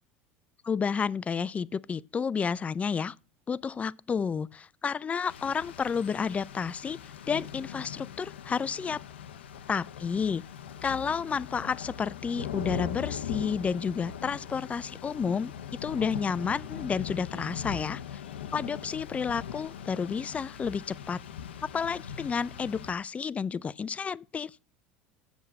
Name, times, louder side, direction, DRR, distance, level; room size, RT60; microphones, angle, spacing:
voice 1, 0.6-3.2 3.5-9.0 9.7-10.4 10.8-15.5 15.8-18.2 18.5-21.2 21.7-24.5, left 6 dB, 25° left, 0.3 m, -31 dB
Rain, 5.3-22.9, left 9 dB, 85° left, 0.6 m, -40 dB
8.4 x 7.1 x 5.5 m
hypercardioid pair, 85°, 6 cm